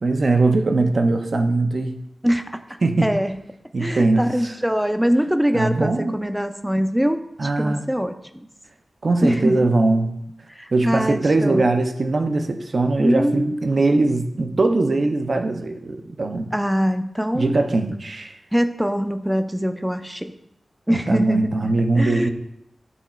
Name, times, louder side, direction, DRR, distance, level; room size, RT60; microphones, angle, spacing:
voice 1, 0.0-2.0 2.8-3.1 3.7-4.2 5.5-6.2 7.4-7.8 9.0-10.1 10.7-16.5 17.3-18.4 20.9-22.3, right 2 dB, 60° right, 6 dB, 0.7 m, -21 dB
voice 2, 2.2-2.6 3.0-3.4 3.8-8.5 9.2-9.7 10.5-11.7 13.0-13.8 16.5-17.6 18.5-20.3 20.9-22.3, equal, 5° right, 8 dB, 0.5 m, -23 dB
8.2 x 3.0 x 4.2 m, 0.81 s
cardioid pair, 45°, 0 cm